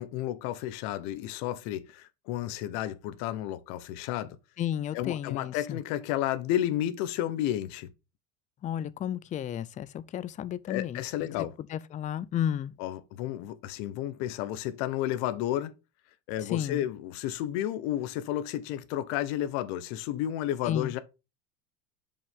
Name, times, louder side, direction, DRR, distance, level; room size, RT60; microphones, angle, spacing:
voice 1, 0.0-4.4 4.9-7.9 10.7-11.5 12.8-15.7 16.3-21.0, left 12 dB, 65° left, 1.1 m, -32 dB
voice 2, 4.6-5.8 8.6-11.0 11.7-12.7 16.5-16.8 20.7-20.9, left 10 dB, 20° left, 0.4 m, -32 dB
7.0 x 5.5 x 3.6 m
supercardioid pair, 125°, 34 cm